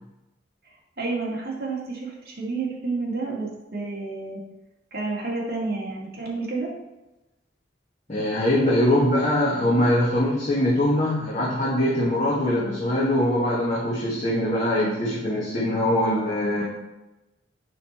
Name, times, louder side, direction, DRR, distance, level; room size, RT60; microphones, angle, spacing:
voice 1, 0.6-4.4 4.9-6.7, right 3 dB, 55° right, -4 dB, 2.1 m, -30 dB
voice 2, 8.1-16.6, left 1 dB, 35° left, -6 dB, 1.4 m, -22 dB
8.2 x 5.4 x 4.3 m, 1.0 s
head